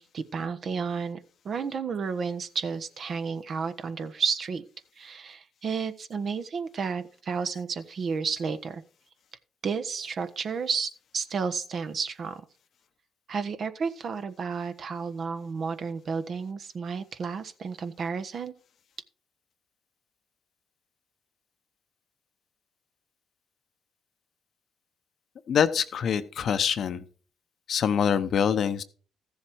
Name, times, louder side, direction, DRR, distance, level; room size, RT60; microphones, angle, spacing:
voice 1, 0.0-4.6 5.0-8.8 9.6-12.4 13.3-18.5, right 5 dB, 55° right, 10 dB, 1.2 m, -32 dB
voice 2, 25.5-27.0 27.7-28.8, left 7 dB, 60° left, 10 dB, 0.9 m, -25 dB
14.0 x 7.2 x 4.7 m, 0.41 s
supercardioid pair, 70°, 0 cm